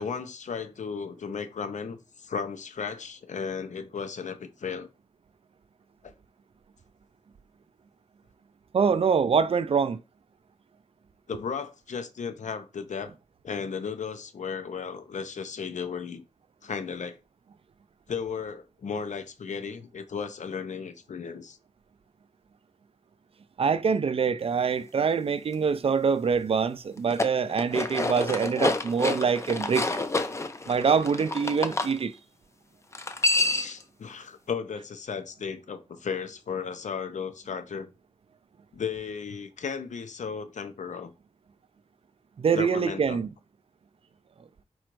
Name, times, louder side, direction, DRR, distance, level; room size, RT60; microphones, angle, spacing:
voice 1, 0.0-4.9 6.0-6.1 11.3-13.1 13.4-16.2 16.6-17.2 18.1-21.6 33.4-37.9 38.7-41.1 42.6-43.2, left 6 dB, 70° left, 0.6 m, -35 dB
voice 2, 8.7-10.0 23.6-30.0 30.7-32.2 42.4-43.3, right 6 dB, 50° right, 0.3 m, -25 dB
sound 1, 27.0-31.9 32.9-33.8, left 2 dB, 20° left, 0.4 m, -28 dB
4.3 x 2.6 x 4.5 m
wide cardioid pair, 125°, 13 cm